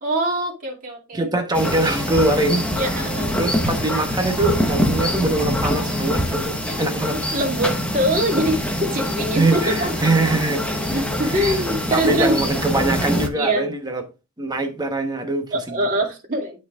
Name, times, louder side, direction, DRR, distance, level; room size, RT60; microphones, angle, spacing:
voice 1, 0.0-1.3 2.8-3.4 7.1-10.0 10.9-12.4 13.3-13.7 15.5-16.7, right 1 dB, 40° right, 2.5 m, -23 dB
voice 2, 1.1-2.6 3.4-7.2 9.3-10.6 11.9-14.0 14.4-15.5, right 2 dB, 20° right, 1.1 m, -22 dB
sound 1, 1.5-13.3, equal, 5° left, 1.0 m, -24 dB
12.0 x 4.2 x 2.4 m
head